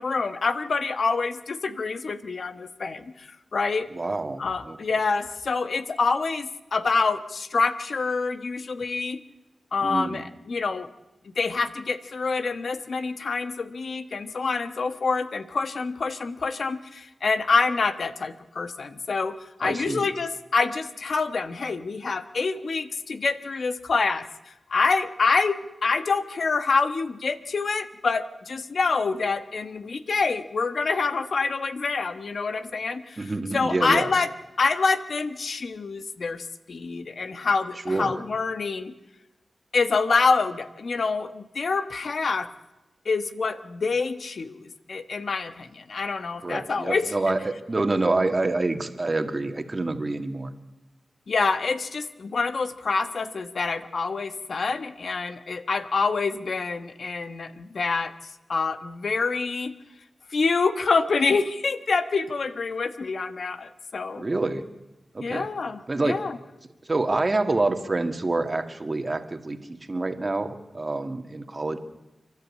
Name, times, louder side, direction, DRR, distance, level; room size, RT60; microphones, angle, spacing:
voice 1, 0.0-3.9 4.4-9.2 9.7-10.9 11.2-24.3 24.7-34.3 34.6-38.9 39.7-42.5 43.0-47.3 51.3-58.1 58.5-59.7 60.3-64.2 65.2-66.3, left 4 dB, 70° left, 11 dB, 1.2 m, -26 dB
voice 2, 3.9-4.8 9.8-10.2 19.6-20.1 33.2-34.1 37.9-38.2 46.4-50.5 64.2-64.6 65.1-65.5 65.9-66.2 66.9-71.8, right 2 dB, 40° right, 7 dB, 1.9 m, -27 dB
30.0 x 12.0 x 8.5 m, 1.0 s
cardioid pair, 55°, 0 cm